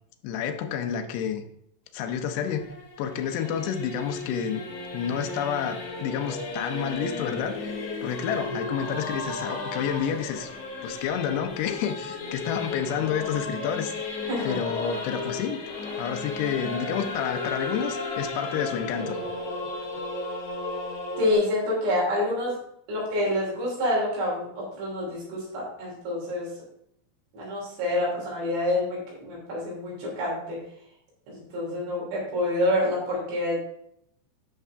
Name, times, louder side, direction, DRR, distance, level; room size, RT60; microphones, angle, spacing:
voice 1, 0.2-1.4 1.9-2.7 3.0-4.6 4.9-10.5 10.8-13.9 14.4-15.6 16.0-19.2, left 8 dB, 80° left, 6 dB, 2.9 m, -29 dB
Singing / Musical instrument, 2.0-21.3, left 2 dB, 55° left, 2.0 m, -34 dB
voice 2, 21.2-22.6 22.9-26.5 27.3-30.6 31.3-33.6, left 1 dB, 75° right, -4 dB, 5.5 m, -27 dB
11.0 x 6.0 x 3.5 m, 0.74 s
omnidirectional pair, 5.1 m